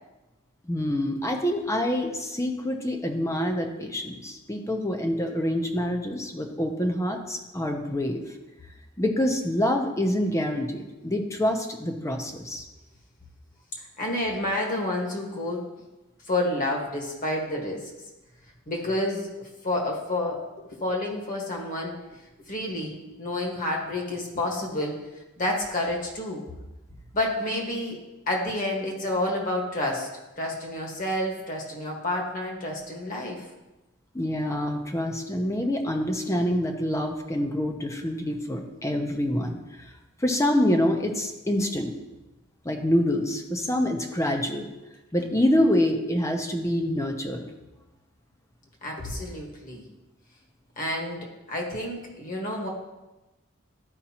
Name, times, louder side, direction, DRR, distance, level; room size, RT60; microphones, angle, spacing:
voice 1, 0.7-8.2 9.0-12.6 34.1-39.6 40.2-41.9 42.6-44.7 45.1-47.4, left 1 dB, 15° left, 4 dB, 0.7 m, -26 dB
voice 2, 13.8-15.7 16.2-17.9 18.7-22.2 22.5-26.4 27.1-28.0 28.3-30.1 30.4-33.5 48.8-49.8 50.8-52.7, left 1 dB, 40° left, 0 dB, 1.6 m, -29 dB
12.5 x 5.1 x 2.9 m, 1.0 s
head